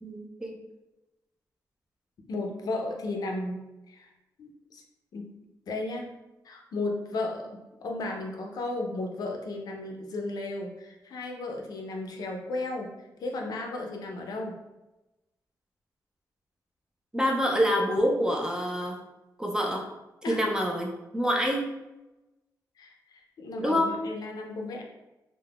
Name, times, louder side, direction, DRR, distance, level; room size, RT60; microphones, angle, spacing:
voice 1, 0.0-0.6 17.1-19.0 19.4-19.9 20.3-21.6 23.6-23.9, equal, 10° right, 1 dB, 0.3 m, -26 dB
voice 2, 2.3-4.1 4.4-4.8 5.1-5.4 5.7-6.1 6.4-12.9 13.2-14.6 20.2-20.6 22.8-24.8, left 2 dB, 65° left, 2 dB, 0.4 m, -34 dB
3.4 x 2.1 x 2.3 m, 1.0 s
wide cardioid pair, 160°, 7 cm